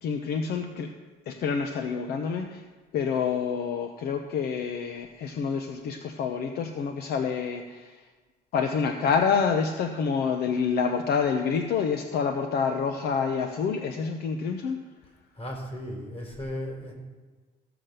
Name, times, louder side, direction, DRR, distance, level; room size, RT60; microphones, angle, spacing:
voice 1, 0.0-0.9 1.3-2.6 2.9-8.0 8.5-14.8, left 6 dB, 70° left, 5 dB, 0.9 m, -27 dB
voice 2, 15.4-16.9, equal, 35° left, 0 dB, 4.2 m, -35 dB
15.0 x 6.0 x 6.8 m, 1.3 s
cardioid pair, 110°, 17 cm